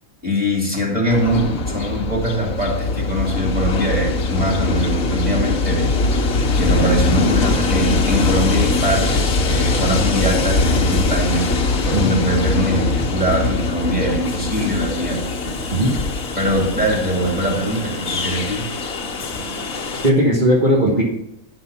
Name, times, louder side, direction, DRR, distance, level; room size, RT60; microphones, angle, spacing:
voice 1, 0.2-5.9 6.5-11.5 11.8-15.2 16.3-18.6 19.3-19.4, equal, 5° right, -3 dB, 2.9 m, -22 dB
Train, 1.1-20.1, left 3 dB, 55° left, 1.4 m, -21 dB
voice 2, 20.0-21.0, right 1 dB, 35° right, -4 dB, 1.5 m, -16 dB
10.5 x 6.2 x 5.7 m, 0.82 s
omnidirectional pair, 1.4 m